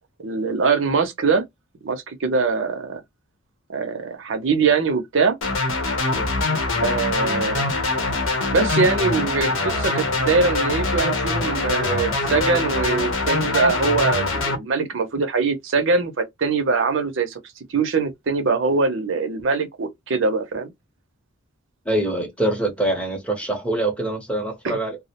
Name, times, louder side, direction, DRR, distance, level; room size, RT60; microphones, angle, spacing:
voice 1, 0.2-1.4 1.8-3.0 3.7-5.4 6.8-7.7 8.5-17.4 17.7-20.7 24.6-24.8, right 4 dB, 60° right, 0.5 m, -22 dB
sound 1, 5.4-14.6, left 3 dB, 70° left, 0.8 m, -23 dB
voice 2, 21.9-25.0, right 1 dB, 5° left, 0.6 m, -24 dB
2.3 x 2.0 x 2.8 m
head